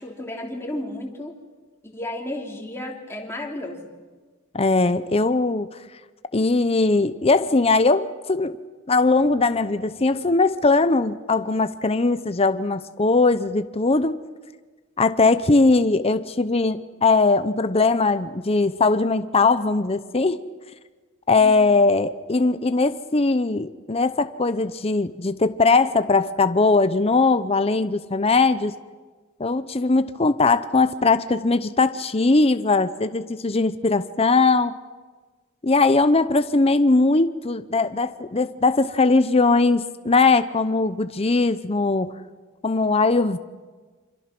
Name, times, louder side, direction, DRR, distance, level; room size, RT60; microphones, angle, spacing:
voice 1, 0.0-1.3 1.8-3.8 21.4-21.7, left 1 dB, 10° left, 0 dB, 3.2 m, -33 dB
voice 2, 4.5-5.7 6.3-8.6 8.9-14.2 15.0-20.4 21.3-28.7 29.4-34.8 35.6-42.1 42.6-43.4, left 3 dB, 30° left, 12 dB, 0.7 m, -20 dB
27.5 x 26.5 x 6.1 m, 1.4 s
head